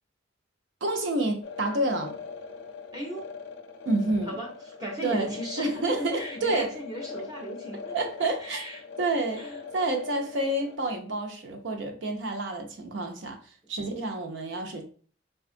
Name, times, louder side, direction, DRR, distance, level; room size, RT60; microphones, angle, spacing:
voice 1, 0.8-2.2 3.8-4.4 5.0-6.7 7.9-8.7 9.0-13.4 13.7-14.9, right 2 dB, 75° right, 0.6 m, -29 dB
sound 1, 1.4-10.8, left 5 dB, 80° left, 0.4 m, -41 dB
voice 2, 2.9-3.3 4.2-8.8 9.4-9.6, right 1 dB, 20° right, 0.6 m, -37 dB
3.6 x 2.3 x 2.5 m
head